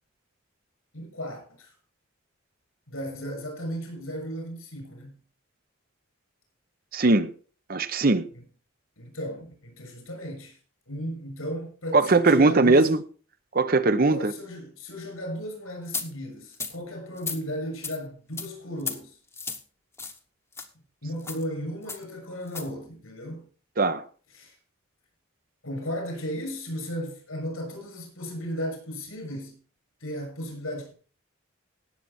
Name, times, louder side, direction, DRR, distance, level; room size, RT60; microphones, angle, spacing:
voice 1, 0.9-1.8 2.9-5.2 8.3-8.4 9.0-10.6 10.9-12.9 14.1-19.2 21.0-23.5 24.3-24.6 25.6-29.6 30.0-30.9, equal, 85° left, 6.9 m, -35 dB
voice 2, 6.9-7.3 7.7-8.3 11.9-13.0 13.5-14.3 23.8-24.0, right 3 dB, 45° right, 0.8 m, -20 dB
sound 1, 15.9-16.1 16.5-16.7 17.2-17.4 17.8-18.0 18.4-18.5 18.8-19.0 19.3-19.6 20.0-20.2 20.5-20.7 21.2-21.4 21.9-22.0 22.5-22.7, left 4 dB, 15° left, 1.1 m, -34 dB
17.5 x 7.8 x 4.3 m
head